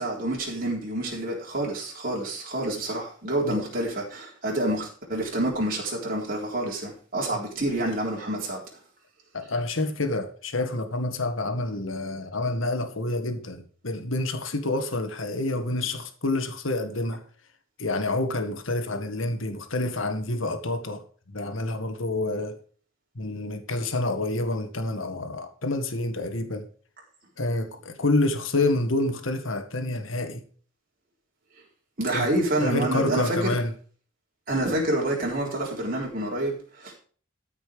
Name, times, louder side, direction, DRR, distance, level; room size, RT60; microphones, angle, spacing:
voice 1, 0.0-8.6 32.0-33.6 34.5-37.0, right 1 dB, 45° right, 3.7 m, -28 dB
voice 2, 9.3-17.2 17.8-21.0 21.3-22.6 23.2-26.7 27.4-30.4 32.1-32.3 32.6-33.7, left 2 dB, 75° left, 1.8 m, -28 dB
13.5 x 6.1 x 5.1 m
head